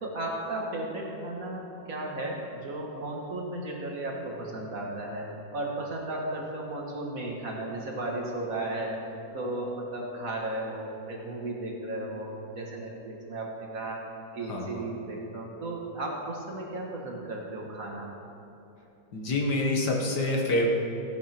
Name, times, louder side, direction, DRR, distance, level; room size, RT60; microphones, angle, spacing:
voice 1, 0.0-5.3 5.5-14.0 14.3-18.1, right 2 dB, 45° right, -2 dB, 1.8 m, -35 dB
voice 2, 14.5-14.9 19.1-20.7, left 1 dB, 60° left, 0 dB, 1.8 m, -27 dB
15.5 x 9.4 x 4.4 m, 2.9 s
omnidirectional pair, 2.1 m